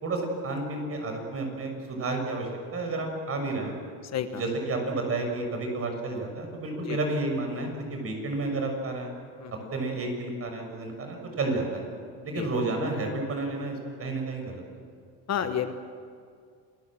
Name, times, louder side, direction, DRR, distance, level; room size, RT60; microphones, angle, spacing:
voice 1, 0.0-3.8 4.3-9.1 9.7-11.9 12.2-14.6, right 2 dB, 35° right, 3 dB, 6.6 m, -31 dB
voice 2, 4.0-4.4 6.8-7.0 9.4-9.7 12.3-12.5 15.3-15.7, left 9 dB, 40° left, 9 dB, 1.1 m, -31 dB
28.0 x 20.0 x 7.6 m, 2.2 s
cardioid pair, 135°, 42 cm